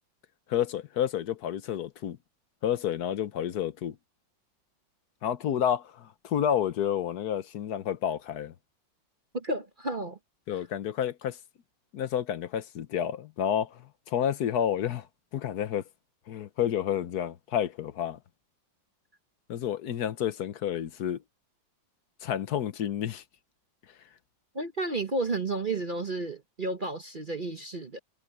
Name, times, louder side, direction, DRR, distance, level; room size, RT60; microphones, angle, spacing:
voice 1, 0.5-2.2 2.6-3.9 5.2-8.5 10.5-11.4 11.9-15.1 15.3-15.8 16.3-18.2 19.5-21.2 22.2-23.2, left 9 dB, 60° left, 1.3 m, -30 dB
voice 2, 9.3-10.2 10.5-10.6 24.5-28.0, right 2 dB, 35° right, 0.9 m, -32 dB
omnidirectional pair, 2.1 m